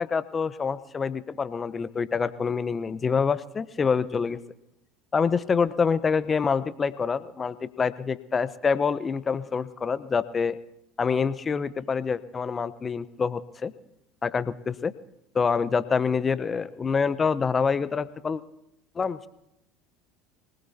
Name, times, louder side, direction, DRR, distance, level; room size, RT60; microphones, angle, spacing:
voice 1, 0.0-4.4 5.1-10.6 11.0-13.7 14.2-14.9 15.3-18.4 19.0-19.3, left 5 dB, 30° left, 15 dB, 0.9 m, -26 dB
25.5 x 19.5 x 2.8 m, 0.83 s
hypercardioid pair, 70°, 0 cm